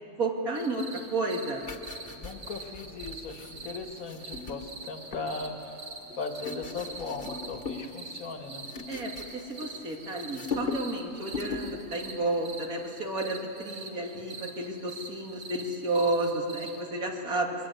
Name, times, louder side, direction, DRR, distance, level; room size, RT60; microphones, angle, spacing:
voice 1, 0.2-1.6 8.9-17.7, right 2 dB, 85° right, 0 dB, 3.1 m, -31 dB
sound 1, 0.5-16.9, right 3 dB, 60° right, 2.3 m, -45 dB
sound 2, 1.6-5.5 6.1-7.9 8.2-10.0 10.2-11.0 11.3-11.8 12.1-12.3, left 4 dB, 40° left, 1.5 m, -39 dB
voice 2, 2.1-5.7 6.2-8.7, left 4 dB, 80° left, 4 dB, 2.2 m, -38 dB
28.0 x 22.0 x 8.1 m, 2.8 s
omnidirectional pair, 1.5 m